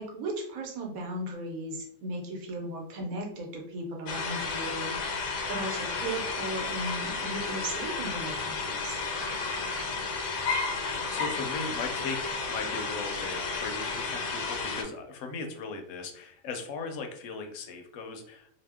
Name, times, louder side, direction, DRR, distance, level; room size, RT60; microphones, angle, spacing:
voice 1, 0.0-9.0, right 1 dB, 90° right, 1 dB, 1.2 m, -36 dB
sound 1, 4.1-14.8, left 4 dB, 90° left, 1.1 m, -32 dB
voice 2, 10.9-12.2 12.5-18.5, left 4 dB, 70° left, 5 dB, 0.9 m, -38 dB
2.8 x 2.0 x 3.4 m, 0.66 s
omnidirectional pair, 1.4 m